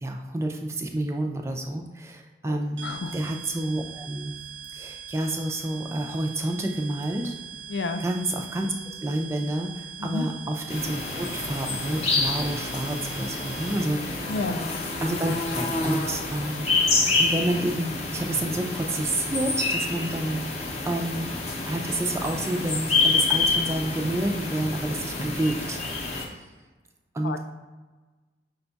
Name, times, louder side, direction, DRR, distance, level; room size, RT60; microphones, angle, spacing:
voice 1, 0.0-4.4 4.7-7.3 8.0-8.7 9.0-14.4 15.0-16.7 17.0-21.3 21.7-26.4 27.1-27.4, right 1 dB, 15° right, 2 dB, 0.3 m, -29 dB
voice 2, 2.4-3.1 7.7-8.0 10.0-10.3 14.3-14.6 27.2-27.4, left 3 dB, 75° left, 8 dB, 0.4 m, -30 dB
sound 1, 2.8-14.2, right 8 dB, 85° right, 0.7 m, -42 dB
sound 2, 10.7-26.3, left 3 dB, 35° left, 0.6 m, -28 dB
5.2 x 2.3 x 3.9 m, 1.3 s
head